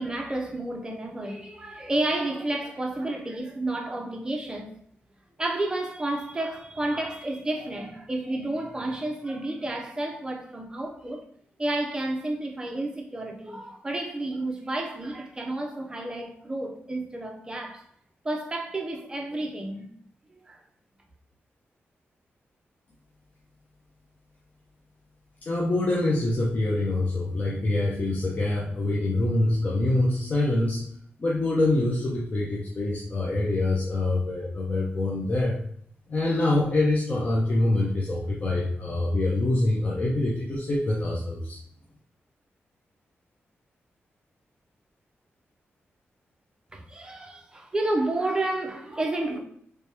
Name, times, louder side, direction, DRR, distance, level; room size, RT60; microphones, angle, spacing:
voice 1, 0.0-4.7 5.4-11.2 11.6-17.9 18.2-19.9 20.5-20.6 46.7-49.4, right 2 dB, 20° right, 0.6 m, -31 dB
voice 2, 25.4-30.8 31.2-35.6 36.1-41.6, left 2 dB, 35° left, 0.6 m, -25 dB
3.2 x 3.0 x 3.4 m
wide cardioid pair, 135°, 4 cm